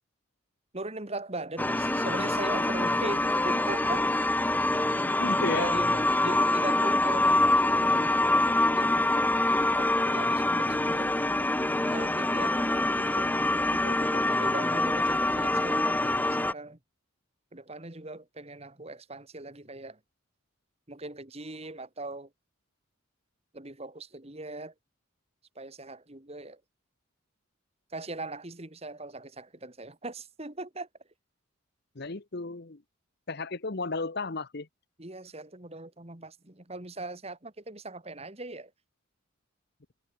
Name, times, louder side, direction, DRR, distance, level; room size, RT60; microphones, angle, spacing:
voice 1, 0.7-4.1 5.5-8.2 8.6-9.1 9.8-11.2 11.8-12.6 14.3-16.8 17.5-20.0 20.9-22.3 23.5-24.7 25.6-26.6 27.9-30.9 35.0-38.7, right 2 dB, 30° right, 1.8 m, -39 dB
sound 1, 1.6-16.5, left 2 dB, 10° left, 0.8 m, -25 dB
voice 2, 5.2-5.8 13.1-13.3 13.7-14.2 31.9-32.8 33.3-34.7, left 3 dB, 50° left, 1.0 m, -34 dB
head